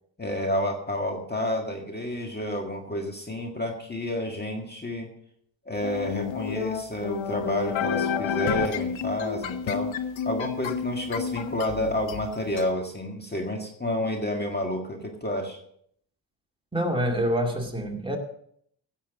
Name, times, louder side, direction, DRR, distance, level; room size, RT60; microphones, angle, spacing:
voice 1, 0.2-5.1 5.7-9.9 10.3-15.6, left 1 dB, 20° left, 2 dB, 1.8 m, -30 dB
sound 1, 5.8-12.7, left 8 dB, 75° left, 1.1 m, -30 dB
voice 2, 16.7-18.2, equal, 10° right, 0 dB, 2.3 m, -26 dB
16.5 x 7.4 x 5.2 m, 0.67 s
cardioid pair, 105°, 47 cm